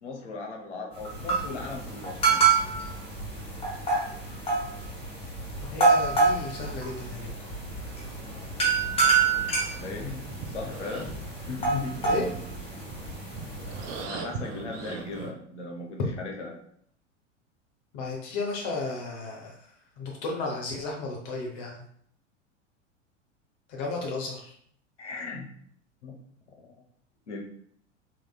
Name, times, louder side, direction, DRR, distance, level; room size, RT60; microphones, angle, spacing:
voice 1, 0.0-2.4 9.4-12.5 13.6-13.8 14.1-16.6 25.0-25.5 26.0-26.1 27.3-27.4, left 3 dB, 70° left, 1 dB, 0.9 m, -37 dB
sound 1, 0.9-14.0, right 4 dB, 15° left, 1.1 m, -27 dB
voice 2, 5.6-7.3 12.0-12.2 17.9-19.5 20.0-21.8 23.7-24.5, left 3 dB, 40° left, 0 dB, 0.8 m, -33 dB
sound 2, 8.6-15.3, right 5 dB, 30° right, 0.4 m, -41 dB
3.8 x 3.0 x 2.2 m, 0.64 s
figure-of-eight pair, 85°, 37 cm